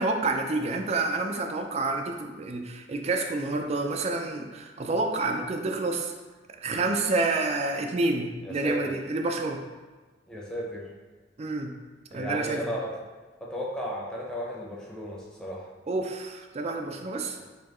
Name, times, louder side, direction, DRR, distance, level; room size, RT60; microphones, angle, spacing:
voice 1, 0.0-6.1 6.6-9.6 11.4-11.7 12.1-12.6 15.9-17.4, right 2 dB, 35° right, 3 dB, 0.4 m, -28 dB
voice 2, 8.4-8.8 10.3-10.9 12.1-12.9 13.4-15.7, equal, 5° left, -5 dB, 0.7 m, -34 dB
4.4 x 2.9 x 3.0 m, 1.3 s
head